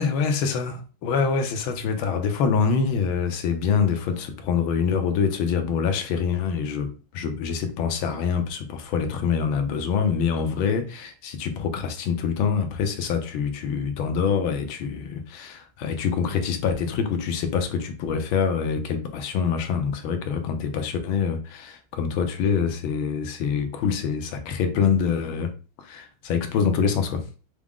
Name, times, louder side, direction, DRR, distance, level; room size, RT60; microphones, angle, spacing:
voice 1, 0.0-6.9 7.1-25.5 25.8-27.2, left 6 dB, 75° left, 6 dB, 1.5 m, -25 dB
6.1 x 2.0 x 3.5 m, 0.36 s
omnidirectional pair, 2.4 m